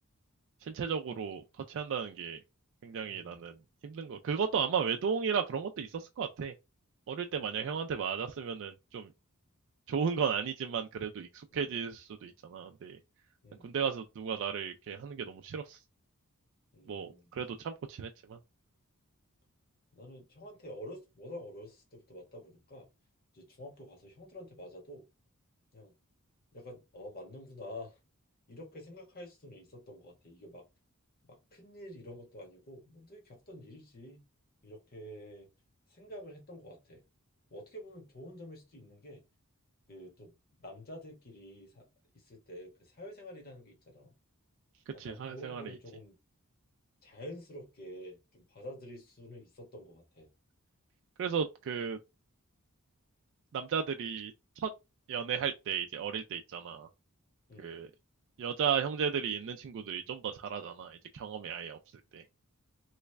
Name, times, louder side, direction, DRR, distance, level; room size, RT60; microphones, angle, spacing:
voice 1, 0.6-2.4 2.8-3.6 3.8-6.5 7.1-9.1 9.9-13.0 13.6-15.8 16.9-18.4 45.0-45.6 51.2-52.0 53.5-54.7 55.1-56.9 57.6-57.9 58.4-61.8 62.1-62.2, right 7 dB, 60° right, 0.3 m, -34 dB
voice 2, 3.1-3.4 11.5-11.7 13.4-13.7 16.7-17.3 19.9-22.9 23.3-25.0 25.7-25.9 26.5-28.0 28.5-30.6 31.3-34.2 34.6-35.5 35.9-37.0 37.5-39.2 39.9-40.3 40.6-41.9 42.1-44.1 44.9-46.1 47.0-50.3 57.5-57.8, equal, 45° left, 1.3 m, -48 dB
3.1 x 2.4 x 3.2 m
head